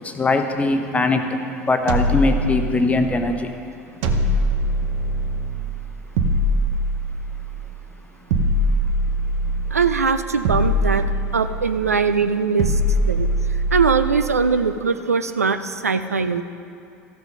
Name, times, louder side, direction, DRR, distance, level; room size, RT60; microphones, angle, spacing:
voice 1, 0.0-1.2 1.6-3.5, left 3 dB, 15° left, 6 dB, 1.0 m, -21 dB
sound 1, 1.9-3.2 4.0-5.7 6.2-7.6 8.3-9.9 10.4-11.8 12.6-14.2, equal, 60° right, 0.9 m, -22 dB
voice 2, 9.7-11.1 11.3-13.3 13.7-16.4, right 5 dB, 90° right, 10 dB, 0.4 m, -21 dB
14.0 x 5.9 x 5.3 m, 2.5 s
figure-of-eight pair, 70°, 8 cm